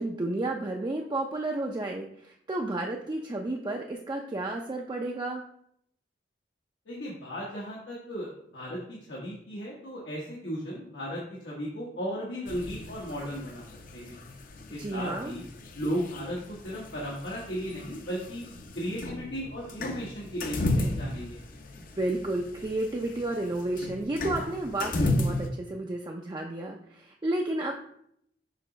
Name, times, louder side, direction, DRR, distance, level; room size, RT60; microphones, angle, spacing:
voice 1, 0.0-5.4 14.8-15.3 22.0-27.7, right 2 dB, 25° right, 1 dB, 0.4 m, -32 dB
voice 2, 6.9-13.6 13.9-14.1 14.7-15.4 15.7-18.4 18.7-21.4, equal, 85° left, -5 dB, 1.3 m, -35 dB
sound 1, 12.5-25.5, left 2 dB, 50° left, 0.7 m, -35 dB
6.5 x 2.9 x 5.1 m, 0.71 s
head